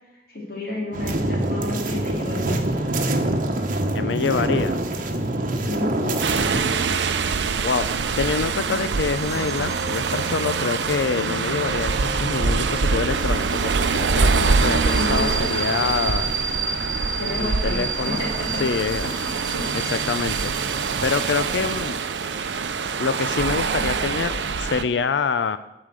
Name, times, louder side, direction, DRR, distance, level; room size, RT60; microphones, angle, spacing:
voice 1, 0.3-2.6 5.7-6.0 14.9-15.4 17.2-18.6 19.0-19.3 19.5-19.6, left 1 dB, 55° left, -2 dB, 2.6 m, -30 dB
sound 1, 0.9-6.6, right 1 dB, 50° right, 1.0 m, -25 dB
voice 2, 3.9-4.8 6.0-6.6 7.6-16.3 17.4-18.2 18.6-19.1 19.9-20.5 21.0-22.0 23.0-25.6, left 5 dB, 80° left, 13 dB, 0.4 m, -26 dB
sound 2, 6.2-24.8, right 4 dB, 85° right, 0.7 m, -24 dB
sound 3, 7.8-24.1, right 4 dB, 20° right, 0.6 m, -34 dB
11.0 x 5.0 x 7.6 m, 0.93 s
head